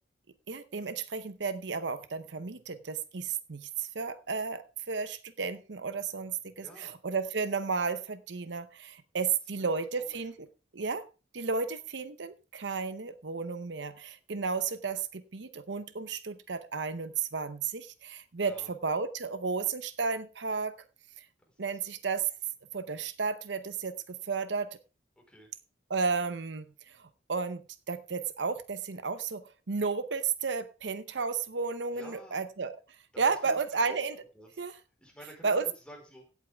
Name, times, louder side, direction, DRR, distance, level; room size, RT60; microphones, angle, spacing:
voice 1, 0.5-10.3 10.7-11.0 11.3-20.7 21.6-22.3 22.7-24.8 25.9-27.6 27.9-32.7 33.2-34.1 34.6-34.7 35.4-35.6, right 5 dB, 70° right, 12 dB, 0.8 m, -33 dB
voice 2, 6.6-7.0 10.0-10.2 18.4-18.7 21.5-21.8 25.2-25.5 31.9-32.4 33.1-33.4 33.8-33.9 34.3-34.6 35.0-36.3, equal, 5° left, 0 dB, 4.4 m, -51 dB
16.0 x 8.3 x 3.5 m, 0.33 s
head